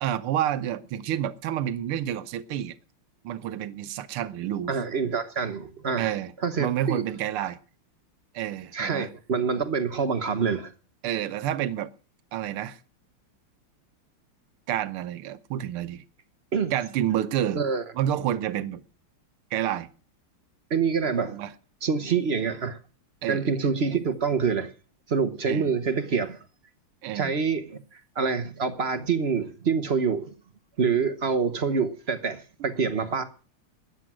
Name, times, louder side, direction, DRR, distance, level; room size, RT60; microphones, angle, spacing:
voice 1, 0.0-2.8 3.2-4.7 6.0-6.3 6.6-7.6 8.3-9.1 11.0-11.9 12.3-12.8 14.7-16.0 16.7-17.6 18.0-18.8 19.5-19.9 21.3-21.5 23.2-23.7 25.5-25.7 27.0-27.3, right 11 dB, 90° right, 1.7 m, -29 dB
voice 2, 4.7-6.1 6.4-7.0 7.4-7.5 8.7-10.7 16.5-16.7 17.5-17.8 20.7-21.4 21.8-22.8 23.3-24.7 25.1-26.4 27.1-30.3 30.8-33.2, right 5 dB, 45° right, 0.9 m, -26 dB
13.5 x 10.0 x 6.1 m
omnidirectional pair, 2.3 m